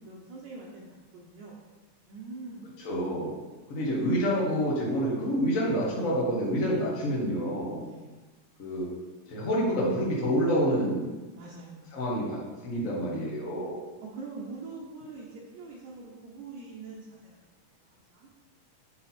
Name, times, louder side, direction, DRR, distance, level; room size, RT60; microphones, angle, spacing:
voice 1, 0.0-1.6 2.1-2.8 7.8-8.2 11.4-12.1 14.0-17.4 17.8-18.3, right 3 dB, 70° right, -5 dB, 2.1 m, -44 dB
voice 2, 2.8-3.3 3.7-7.8 8.6-8.9 9.3-11.1 11.9-13.8, equal, 55° left, -5 dB, 0.8 m, -28 dB
7.7 x 4.1 x 4.2 m, 1.2 s
omnidirectional pair, 3.6 m